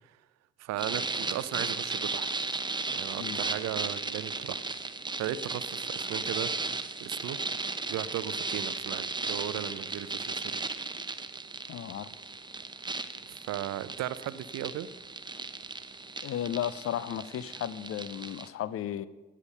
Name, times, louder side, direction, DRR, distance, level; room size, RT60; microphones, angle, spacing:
voice 1, 0.6-2.3 2.9-4.6 5.2-6.5 7.0-7.4 7.9-10.6 13.3-14.9, right 12 dB, 55° right, 16 dB, 0.7 m, -36 dB
sound 1, 0.8-18.5, right 3 dB, 15° right, 0.9 m, -36 dB
voice 2, 11.7-12.1 16.2-19.1, left 10 dB, 45° left, 18 dB, 0.6 m, -34 dB
17.5 x 7.3 x 5.4 m, 1.2 s
figure-of-eight pair, 40°, 32 cm